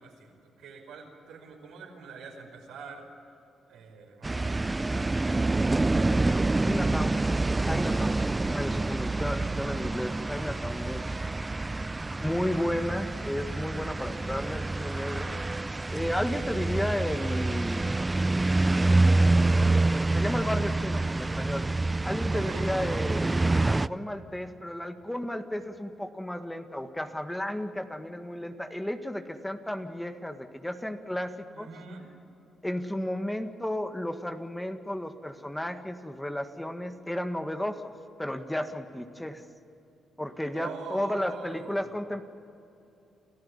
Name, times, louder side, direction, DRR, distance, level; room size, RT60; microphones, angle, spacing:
voice 1, 0.0-3.1 3.7-4.7 11.3-12.1 22.3-22.6 31.5-32.0 40.5-41.8, right 5 dB, 80° right, 2 dB, 5.1 m, -44 dB
sound 1, 4.2-23.9, right 2 dB, 25° right, 0.5 m, -27 dB
voice 2, 6.6-7.2 7.6-11.0 12.2-15.4 15.9-17.9 20.1-21.7 22.0-31.7 32.6-37.8 38.2-39.4 40.2-42.2, left 1 dB, 10° left, 7 dB, 1.8 m, -33 dB
29.0 x 14.5 x 10.0 m, 2.8 s
supercardioid pair, 55°, 0 cm